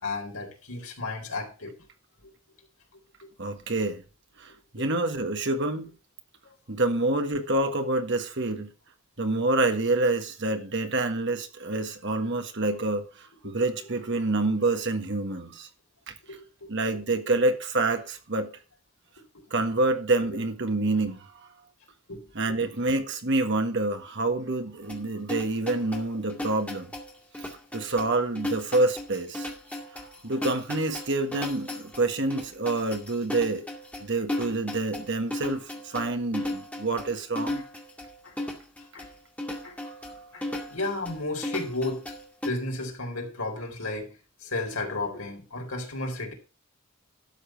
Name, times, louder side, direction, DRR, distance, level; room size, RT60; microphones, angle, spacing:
voice 1, 0.0-1.7 2.2-2.3 3.2-3.3 4.8-4.9 13.4-13.6 16.3-16.7 22.1-22.3 38.2-38.3 38.9-39.1 39.6-39.8 40.3-42.1 42.4-46.3, left 2 dB, 75° left, 4.2 m, -33 dB
voice 2, 3.4-4.0 4.4-5.9 6.7-8.7 9.2-15.7 16.1-16.2 16.7-18.5 19.5-21.3 22.3-26.9 27.4-27.5 27.7-29.5 29.9-33.6 34.0-37.6, right 2 dB, 55° right, 1.6 m, -27 dB
sound 1, 24.9-42.5, left 1 dB, 5° left, 2.1 m, -36 dB
12.5 x 7.2 x 4.6 m
head